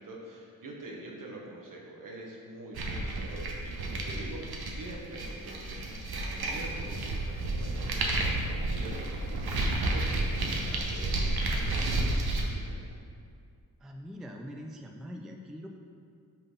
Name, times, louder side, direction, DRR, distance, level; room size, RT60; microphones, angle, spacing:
voice 1, 0.0-11.8 12.5-12.9, right 2 dB, 55° right, -2 dB, 1.2 m, -45 dB
sound 1, 2.7-12.4, right 2 dB, 75° right, 1.0 m, -31 dB
voice 2, 13.8-15.7, equal, ahead, 2 dB, 0.3 m, -43 dB
5.8 x 3.9 x 5.1 m, 2.4 s
wide cardioid pair, 100°, 38 cm